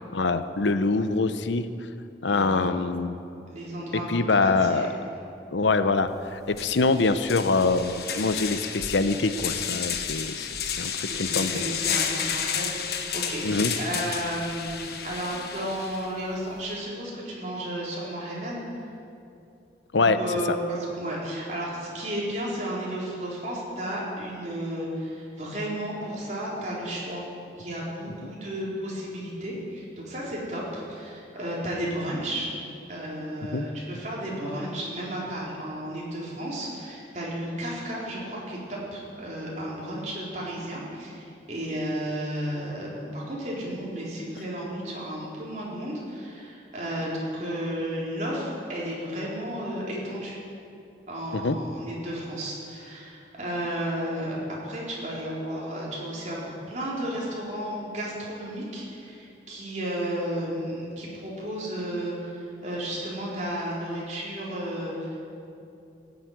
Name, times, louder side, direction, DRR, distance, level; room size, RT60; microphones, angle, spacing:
voice 1, 0.1-1.7 2.2-3.1 4.1-4.9 5.5-11.5 13.4-13.7 19.9-20.2 20.5-20.6 33.5-33.6 51.3-51.6, left 3 dB, 90° left, 11 dB, 0.7 m, -24 dB
voice 2, 2.3-2.7 3.5-4.9 11.1-18.7 20.0-27.2 27.5-32.5 32.9-50.4 51.1-65.2, right 1 dB, 40° right, -5 dB, 4.0 m, -33 dB
sound 1, 6.1-6.2 6.5-16.1, left 7 dB, 60° left, 1.1 m, -31 dB
16.0 x 8.1 x 9.4 m, 2.6 s
head